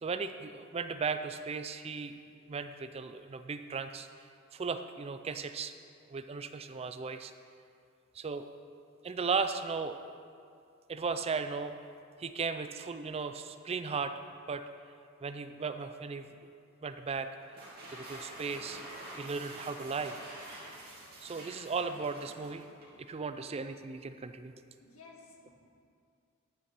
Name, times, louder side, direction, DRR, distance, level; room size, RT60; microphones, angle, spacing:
voice 1, 0.0-2.2 2.5-4.1 4.5-5.7 6.1-7.3 8.1-8.5 9.0-10.0 10.9-11.7 12.2-14.1 14.5-14.6 15.2-16.3 16.8-17.3 17.9-18.8 19.2-20.2 21.2-22.6 23.0-24.5, right 5 dB, 30° right, 10 dB, 0.4 m, -36 dB
sound 1, 17.4-23.0, right 1 dB, 45° right, 2.7 m, -47 dB
voice 2, 24.8-25.5, left 4 dB, 85° left, 0 dB, 1.8 m, -54 dB
10.5 x 6.8 x 6.1 m, 2.3 s
head